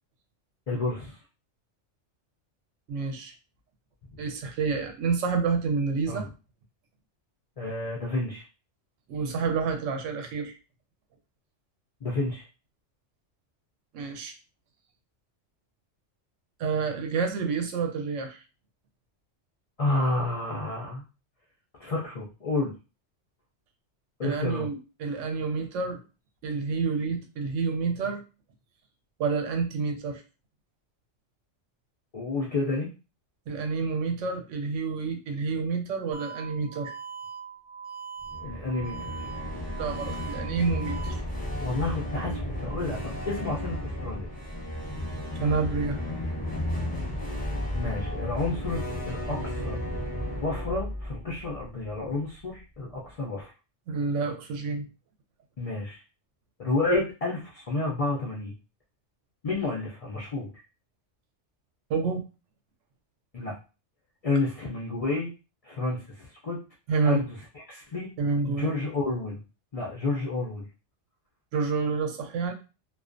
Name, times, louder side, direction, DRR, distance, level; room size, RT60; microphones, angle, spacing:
voice 1, 0.7-1.2 6.1-6.3 7.6-8.4 12.0-12.5 19.8-21.0 21.8-22.7 24.2-24.7 32.1-32.9 38.4-39.1 41.6-44.3 47.7-49.8 50.4-53.5 55.6-56.0 56.6-58.5 59.4-60.5 63.3-63.5 64.2-65.3 65.6-66.6 67.0-67.4 67.7-68.1 68.4-69.4 69.7-70.7, left 2 dB, 70° left, -2 dB, 0.3 m, -30 dB
voice 2, 2.9-3.3 4.2-6.3 9.1-10.6 13.9-14.3 16.6-18.4 24.2-26.0 26.4-28.2 29.2-30.2 33.5-36.9 39.8-41.2 45.4-46.0 53.9-54.9 61.9-62.2 66.9-67.2 68.2-68.7 71.5-72.5, right 4 dB, 80° right, 5 dB, 0.9 m, -28 dB
sound 1, 36.1-41.1, right 6 dB, 60° right, 0.6 m, -41 dB
sound 2, 38.2-52.2, left 1 dB, 10° left, 0.6 m, -33 dB
2.3 x 2.2 x 2.4 m, 0.32 s
omnidirectional pair, 1.2 m